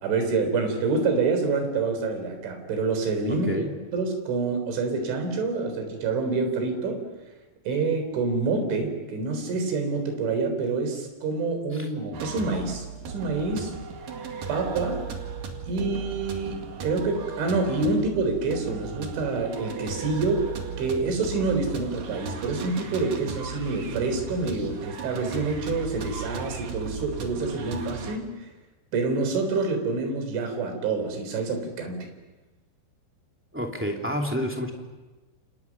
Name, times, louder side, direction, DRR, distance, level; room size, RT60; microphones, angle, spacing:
voice 1, 0.0-3.5 3.9-7.0 7.7-13.7 14.5-15.0 15.7-20.5 20.8-28.5 28.9-32.1, right 3 dB, 75° right, 5 dB, 6.2 m, -27 dB
voice 2, 3.3-3.7 11.7-11.9 33.5-34.7, equal, 5° right, 0 dB, 1.3 m, -29 dB
sound 1, 12.1-28.2, right 5 dB, 55° right, 3.4 m, -36 dB
29.0 x 27.5 x 6.1 m, 1.2 s
omnidirectional pair, 5.5 m